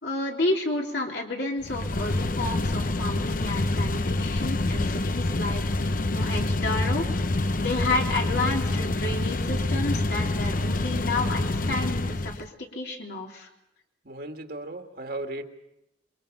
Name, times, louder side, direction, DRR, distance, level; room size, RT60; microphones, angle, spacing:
voice 1, 0.0-7.1 7.6-13.5, left 2 dB, 65° left, 0 dB, 3.5 m, -31 dB
sound 1, 1.6-12.5, left 2 dB, 50° left, 0.8 m, -27 dB
voice 2, 14.0-15.4, right 2 dB, 55° right, 4 dB, 2.0 m, -36 dB
27.0 x 23.5 x 5.4 m, 0.85 s
head